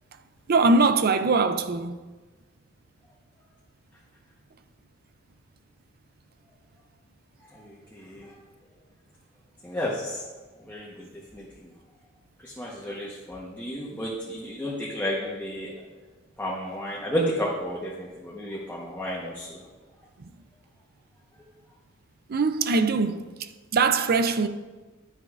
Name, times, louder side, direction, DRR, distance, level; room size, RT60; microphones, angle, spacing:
voice 1, 0.5-2.0 20.2-20.3 22.3-24.5, right 3 dB, 50° right, 0.5 m, -22 dB
voice 2, 7.9-8.3 9.6-10.2 10.7-10.9 11.3-11.4 12.4-15.7 16.4-19.6, equal, 10° left, 1.1 m, -31 dB
11.5 x 9.4 x 2.5 m
head